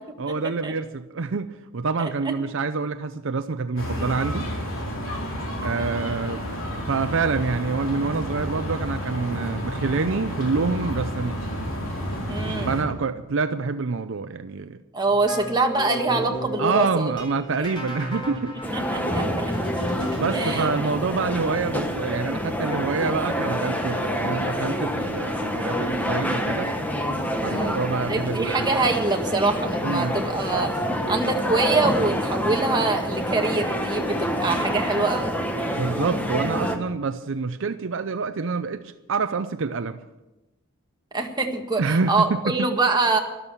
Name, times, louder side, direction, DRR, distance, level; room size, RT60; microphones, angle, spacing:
voice 1, 0.2-4.5 5.6-11.4 12.7-14.8 16.6-18.5 19.6-26.7 27.4-28.7 29.8-30.2 35.7-40.0 41.8-42.7, right 4 dB, 65° right, 10 dB, 0.6 m, -27 dB
sound 1, 3.8-12.8, equal, 65° left, 4.2 m, -30 dB
voice 2, 12.3-12.8 14.9-17.1 18.7-19.5 20.3-20.7 27.4-30.7 31.1-35.3 35.6-35.7 41.1-43.2, right 3 dB, 20° right, 2 dB, 1.7 m, -24 dB
sound 2, 15.1-20.8, equal, 25° left, 4.1 m, -34 dB
sound 3, 18.6-36.8, equal, 10° left, 1.3 m, -27 dB
13.0 x 12.5 x 6.9 m, 1.0 s
head